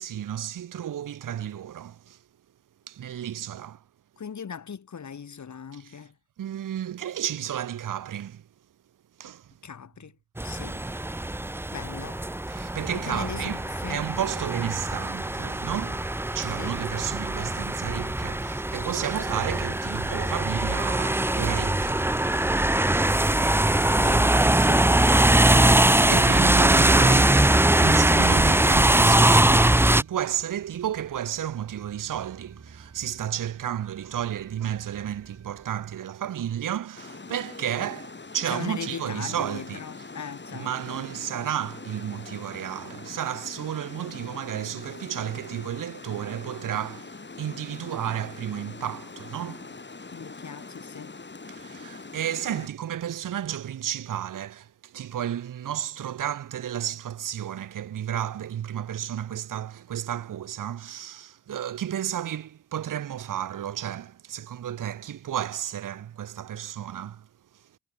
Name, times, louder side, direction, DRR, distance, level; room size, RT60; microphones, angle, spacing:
voice 1, 0.0-2.2 2.9-3.8 5.7-5.8 6.4-8.5 9.2-9.5 12.5-13.6 13.9-22.1 25.4-27.5 27.8-39.8 40.5-49.7 51.5-67.3 67.5-67.6, right 10 dB, 60° right, 1.5 m, -32 dB
voice 2, 4.2-6.2 9.6-10.2 10.4-10.9 11.7-12.2 12.9-14.0 16.6-16.8 23.9-24.9 26.1-26.7 38.5-41.0 50.1-51.2, left 6 dB, 50° left, 3.2 m, -39 dB
sound 1, 10.4-30.0, right 1 dB, 5° right, 0.8 m, -22 dB
sound 2, 20.6-36.0, right 5 dB, 45° right, 6.9 m, -50 dB
Water, 37.0-52.7, left 3 dB, 30° left, 3.9 m, -43 dB
supercardioid pair, 50°, 35 cm